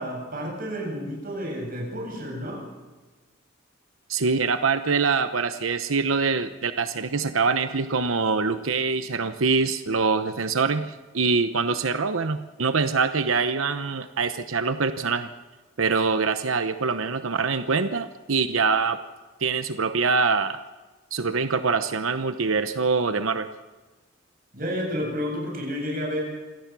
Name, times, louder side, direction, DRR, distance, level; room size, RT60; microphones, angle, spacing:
voice 1, 0.0-2.6 24.5-26.2, equal, 45° right, -2 dB, 7.9 m, -30 dB
voice 2, 4.1-15.3 15.8-19.0 19.4-20.6 21.1-23.5, right 4 dB, 90° right, 10 dB, 0.9 m, -24 dB
27.0 x 17.5 x 6.2 m, 1.3 s
head